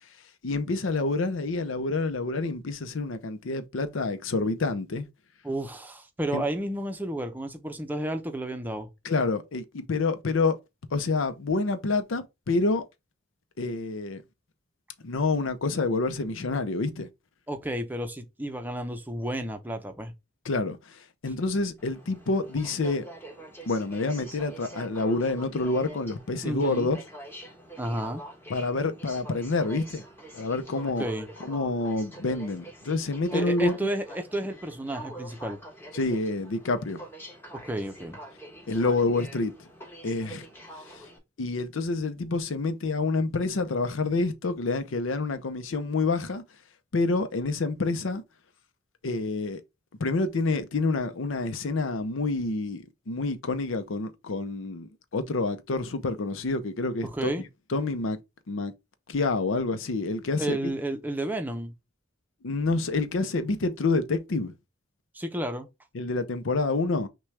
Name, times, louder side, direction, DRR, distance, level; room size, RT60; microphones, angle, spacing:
voice 1, 0.4-5.1 6.3-6.4 9.0-10.6 10.9-12.8 13.6-14.2 15.0-17.1 20.4-23.0 23.7-27.0 28.5-30.0 30.3-31.1 31.4-33.9 35.9-37.0 38.7-39.7 40.0-40.5 41.4-46.4 46.9-48.2 49.0-49.6 50.0-57.3 57.7-58.2 58.5-58.7 59.1-60.6 62.4-64.5 65.9-67.1, left 3 dB, 80° left, 0.6 m, -28 dB
voice 2, 5.4-8.9 17.5-20.1 26.4-26.9 27.8-28.2 31.0-31.3 33.3-35.6 37.6-38.2 57.0-57.4 60.4-61.7 65.1-65.7, right 1 dB, 10° right, 0.6 m, -31 dB
Aircraft, 21.8-41.2, right 1 dB, 10° left, 1.1 m, -45 dB
6.0 x 2.3 x 3.2 m
head